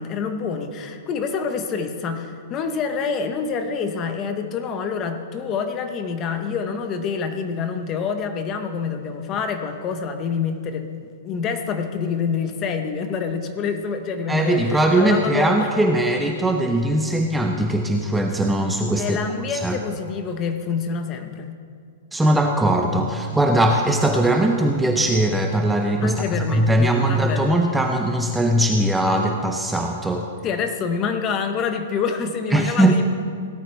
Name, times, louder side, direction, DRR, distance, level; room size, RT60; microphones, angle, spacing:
voice 1, 0.0-15.7 19.0-21.5 26.0-26.7 27.0-27.6 30.4-33.0, left 6 dB, 25° left, 7 dB, 0.9 m, -27 dB
voice 2, 14.3-19.2 19.5-19.8 22.1-30.3 32.5-33.0, right 1 dB, 5° right, 3 dB, 0.5 m, -20 dB
17.5 x 12.0 x 3.4 m, 2.2 s
hypercardioid pair, 160°, 0 cm